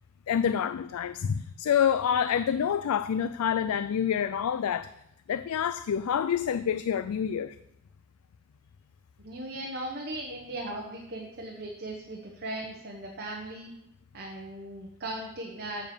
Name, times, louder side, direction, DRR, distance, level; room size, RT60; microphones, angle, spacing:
voice 1, 0.3-4.9 5.3-7.5, left 8 dB, 80° left, 13 dB, 0.3 m, -27 dB
voice 2, 9.2-13.7 14.1-15.9, right 1 dB, 45° right, -1 dB, 1.2 m, -38 dB
7.1 x 6.9 x 7.2 m, 0.83 s
head